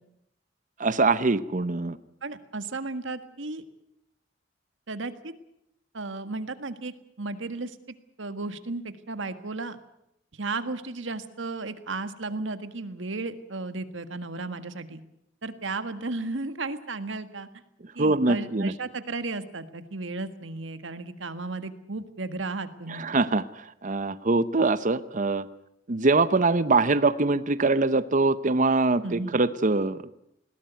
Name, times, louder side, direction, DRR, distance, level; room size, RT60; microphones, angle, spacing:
voice 1, 0.8-2.0 18.0-18.7 22.9-25.5 25.9-30.1, right 3 dB, 45° right, 14 dB, 0.8 m, -23 dB
voice 2, 2.2-3.6 4.9-5.3 5.9-9.8 10.3-15.0 15.4-17.5 18.0-23.1 29.0-29.4, right 3 dB, 80° right, 10 dB, 1.7 m, -34 dB
20.5 x 17.0 x 9.3 m, 0.78 s
head